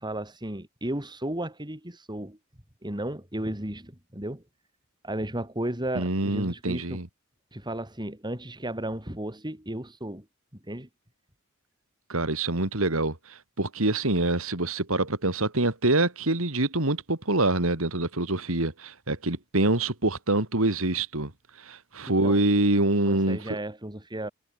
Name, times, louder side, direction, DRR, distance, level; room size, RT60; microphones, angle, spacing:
voice 1, 0.0-2.4 2.8-4.4 5.0-7.0 7.5-10.3 10.6-10.9 22.1-22.4 23.1-24.3, right 1 dB, 20° right, 4.0 m, -34 dB
voice 2, 5.9-7.1 12.1-21.3 21.6-23.5, right 2 dB, 65° right, 3.0 m, -25 dB
head